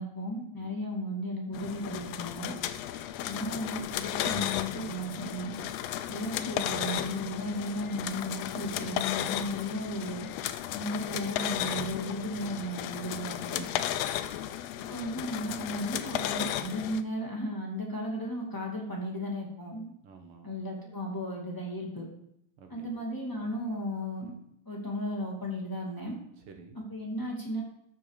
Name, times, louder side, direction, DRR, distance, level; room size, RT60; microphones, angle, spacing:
voice 1, 0.0-2.5 3.2-5.5 6.1-10.3 10.7-13.6 14.9-19.9 20.4-22.1 22.7-24.3 24.6-26.2 26.7-27.6, equal, 10° left, -2 dB, 1.7 m, -35 dB
sound 1, 1.5-17.0, left 12 dB, 80° left, 1.5 m, -34 dB
voice 2, 3.1-3.5 14.2-14.7 20.0-20.5 22.6-22.9 23.3-23.5 26.4-26.9, right 4 dB, 60° right, 5 dB, 1.5 m, -53 dB
13.5 x 6.3 x 4.9 m, 0.77 s
omnidirectional pair, 3.5 m